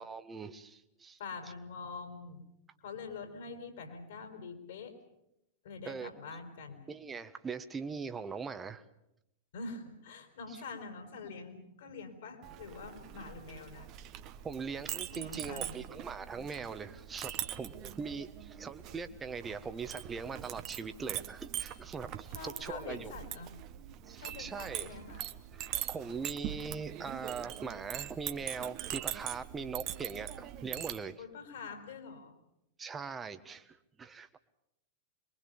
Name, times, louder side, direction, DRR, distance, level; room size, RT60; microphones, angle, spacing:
voice 1, 0.0-1.2 5.8-6.1 6.9-8.8 14.4-23.1 24.1-25.0 25.5-31.2 32.8-34.4, right 5 dB, 20° right, 10 dB, 1.4 m, -41 dB
voice 2, 1.2-2.4 2.8-5.0 5.6-6.9 9.5-13.9 15.1-15.8 22.3-23.6 24.2-25.3 31.2-32.4, left 4 dB, 60° left, 5 dB, 5.2 m, -45 dB
Chink clink, 12.4-31.0, right 12 dB, 40° right, 1.3 m, -42 dB
26.5 x 22.5 x 7.1 m, 0.84 s
figure-of-eight pair, 90°, 0 cm